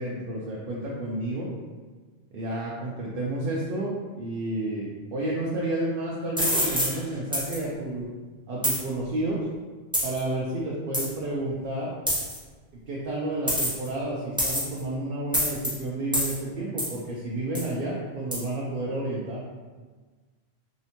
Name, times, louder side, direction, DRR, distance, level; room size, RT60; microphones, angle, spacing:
voice 1, 0.0-1.5 2.3-8.1 8.5-9.4 10.0-11.9 12.9-19.4, right 1 dB, 65° right, -5 dB, 0.7 m, -31 dB
sound 1, 6.4-6.9 7.3-7.6 8.6-8.8 9.9-10.2 10.9-11.1 12.1-12.4 13.5-13.9 14.4-14.8 15.3-15.7 16.1-16.3 16.8-17.0 17.6-17.7 18.3-18.4, equal, 5° right, 0.8 m, -25 dB
3.2 x 2.8 x 2.9 m, 1.4 s
omnidirectional pair, 1.1 m